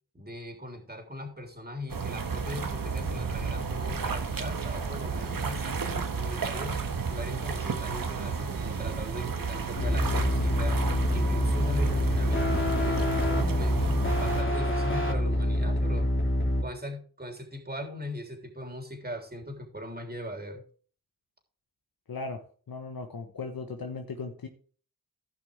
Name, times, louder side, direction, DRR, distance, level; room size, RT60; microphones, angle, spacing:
voice 1, 0.1-6.8 7.1-10.8 11.1-16.1 16.6-20.6, left 1 dB, 25° right, 3 dB, 3.3 m, -40 dB
sound 1, 1.9-14.4, right 5 dB, 65° right, 1.4 m, -32 dB
sound 2, 9.8-16.6, left 1 dB, 35° left, 2.7 m, -26 dB
voice 2, 22.1-22.4 22.7-24.5, left 4 dB, 70° left, 4 dB, 1.2 m, -37 dB
15.5 x 5.7 x 3.4 m, 0.43 s
cardioid pair, 45°, 37 cm